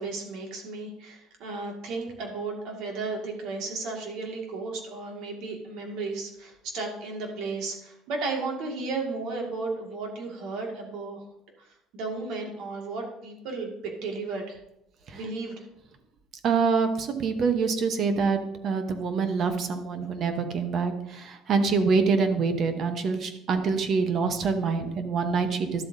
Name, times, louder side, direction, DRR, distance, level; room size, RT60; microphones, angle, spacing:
voice 1, 0.0-11.2 11.9-14.6 15.1-15.6, right 3 dB, 70° right, 1 dB, 2.0 m, -34 dB
voice 2, 16.4-18.4 18.6-25.8, right 5 dB, 45° right, 8 dB, 1.0 m, -25 dB
12.0 x 7.7 x 2.7 m, 0.81 s
cardioid pair, 130°, 0 cm